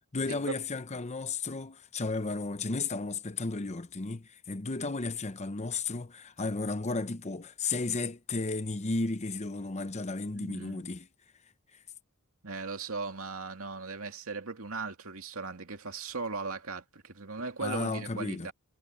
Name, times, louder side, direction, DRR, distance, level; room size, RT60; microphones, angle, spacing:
voice 1, 0.1-11.1 17.6-18.5, left 3 dB, 30° left, 0.8 m, -33 dB
voice 2, 10.3-10.9 12.4-18.5, right 4 dB, 70° right, 2.6 m, -38 dB
head